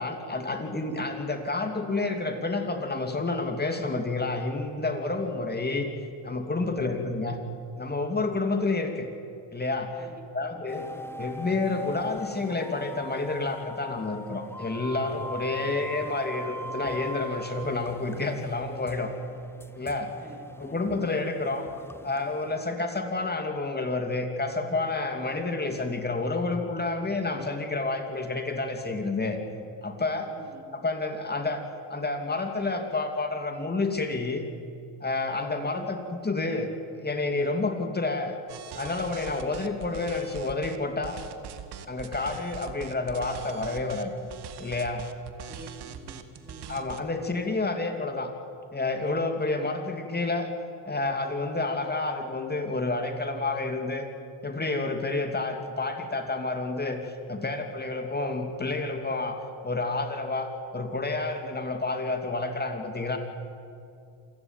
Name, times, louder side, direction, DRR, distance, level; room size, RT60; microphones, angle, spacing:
voice 1, 0.0-5.9 6.2-7.4 7.8-9.1 9.5-10.0 10.3-10.9 11.2-19.1 19.7-20.1 20.6-21.7 22.0-29.4 29.8-30.3 30.7-31.6 31.9-34.4 35.0-36.7 37.0-38.4 38.7-41.2 41.9-44.1 44.6-45.1 46.7-48.3 48.7-50.5 50.8-54.1 54.4-57.0 57.3-59.4 59.6-63.2, left 3 dB, 20° left, 5 dB, 2.8 m, -29 dB
voice 2, 6.5-6.9 10.0-10.6 10.9-11.4 20.2-21.2 30.3-30.8 35.7-36.0 45.5-47.0, right 2 dB, 20° right, 5 dB, 2.7 m, -49 dB
sound 1, 10.7-22.6, equal, 5° left, 1.0 m, -41 dB
sound 2, 38.5-40.8 41.0-47.0, right 9 dB, 55° right, 1.9 m, -42 dB
27.5 x 16.5 x 9.2 m, 2.5 s
supercardioid pair, 95°, 47 cm